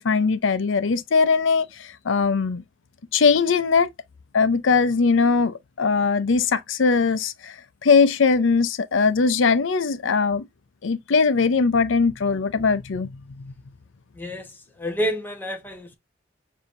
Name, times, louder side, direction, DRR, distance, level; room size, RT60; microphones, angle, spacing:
voice 1, 0.0-2.6 3.1-3.9 4.3-7.6 7.8-10.4 10.8-13.5, left 5 dB, 85° left, 0.5 m, -20 dB
voice 2, 14.1-16.0, equal, 10° left, 0.9 m, -29 dB
6.8 x 2.7 x 2.5 m
head